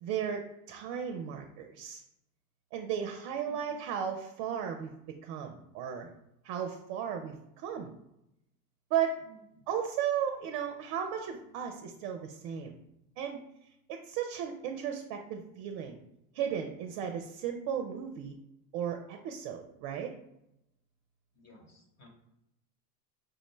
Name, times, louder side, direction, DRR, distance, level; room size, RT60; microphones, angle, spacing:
voice 1, 0.0-2.0 2.7-6.1 6.4-7.9 8.9-9.2 9.7-12.8 13.2-13.4 13.9-16.0 16.3-18.3 18.7-20.1, right 8 dB, 50° right, 4 dB, 0.5 m, -35 dB
voice 2, 3.5-3.8 9.2-9.6 21.3-22.1, equal, 30° left, 2 dB, 1.0 m, -57 dB
4.6 x 2.1 x 3.1 m, 0.84 s
hypercardioid pair, 85°, 49 cm